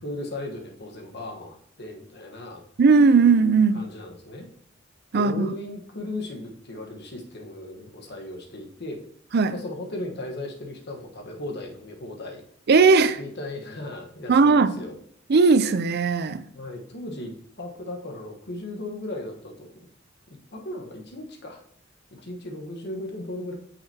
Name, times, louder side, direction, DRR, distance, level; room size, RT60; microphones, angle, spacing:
voice 1, 0.0-2.6 3.5-4.5 5.1-9.0 9.5-12.4 13.2-15.0 16.5-19.7 20.3-21.6 22.1-23.5, left 1 dB, 55° left, 2 dB, 1.2 m, -36 dB
voice 2, 2.8-3.8 5.1-5.5 9.3-9.5 12.7-13.2 14.3-14.7 15.3-16.4, right 4 dB, 55° right, 12 dB, 0.5 m, -18 dB
8.8 x 5.8 x 2.8 m, 0.65 s
head